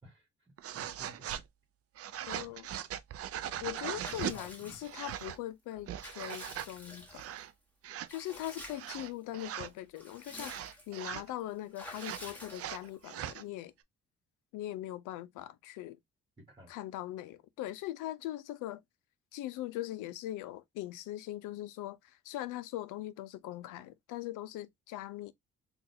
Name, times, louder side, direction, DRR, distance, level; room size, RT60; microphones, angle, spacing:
voice 1, 0.0-1.4 2.3-2.6 4.2-4.8 16.4-16.7, equal, 15° right, 1.3 m, -54 dB
sound 1, 0.6-1.4 2.0-4.4 4.8-5.4 5.8-6.7 7.1-7.5 7.8-8.1 8.7-9.7 10.4-11.3 12.0-13.4, right 11 dB, 50° right, 0.4 m, -40 dB
voice 2, 2.3-2.7 3.6-7.4 8.1-13.7 14.5-16.0 16.7-18.8 19.3-25.3, left 14 dB, 90° left, 0.5 m, -41 dB
Water / Bathtub (filling or washing) / Liquid, 4.0-5.2 5.7-7.4 8.1-9.0 9.4-9.5 9.8-11.0 11.7-13.0, left 1 dB, 5° left, 1.3 m, -49 dB
3.9 x 2.4 x 2.6 m
cardioid pair, 90°, 30 cm